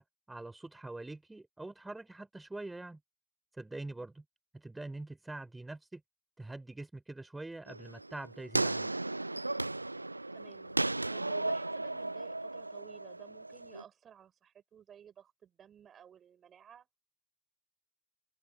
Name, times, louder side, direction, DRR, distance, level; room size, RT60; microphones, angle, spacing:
voice 1, 0.0-3.0 3.6-4.2 4.5-6.0 6.4-8.9, right 2 dB, 15° right, 3.2 m, -44 dB
sound 1, 7.7-13.8, right 2 dB, 90° right, 0.4 m, -35 dB
voice 2, 10.3-16.9, right 8 dB, 45° right, 4.4 m, -55 dB
open air
figure-of-eight pair, 45°, 0 cm